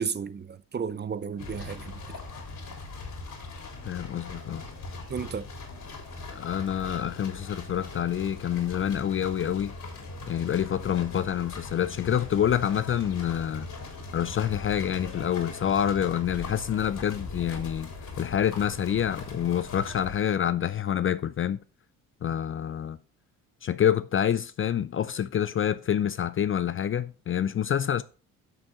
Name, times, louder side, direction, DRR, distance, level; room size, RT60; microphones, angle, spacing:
voice 1, 0.0-2.2 5.1-5.5, right 6 dB, 25° right, 0.6 m, -33 dB
sound 1, 1.4-20.2, left 3 dB, 50° left, 3.5 m, -40 dB
voice 2, 3.9-4.6 6.3-9.7 10.3-13.7 14.1-17.9 18.2-21.6 22.2-23.0 23.6-28.0, left 9 dB, 30° left, 0.5 m, -27 dB
10.5 x 6.1 x 3.8 m
hypercardioid pair, 55°, 41 cm